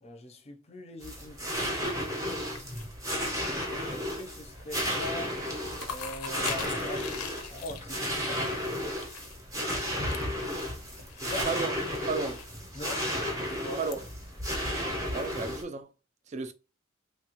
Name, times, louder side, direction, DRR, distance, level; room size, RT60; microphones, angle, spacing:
voice 1, 0.0-2.8 3.9-5.4 5.8-7.2 7.5-8.5 11.2-11.6 12.7-13.2 13.4-13.8, left 1 dB, 30° left, 0.6 m, -42 dB
sound 1, 1.0-15.6, equal, 15° right, 0.7 m, -33 dB
sound 2, 2.4-3.6 4.0-4.4 4.6-5.0 5.3-14.0, left 7 dB, 85° left, 0.5 m, -43 dB
sound 3, 5.8-7.2 11.4-13.0, right 3 dB, 55° right, 0.7 m, -46 dB
voice 2, 12.1-12.4 13.8-14.0 15.1-15.9 16.3-16.5, right 4 dB, 30° right, 0.3 m, -32 dB
3.2 x 2.4 x 2.9 m
head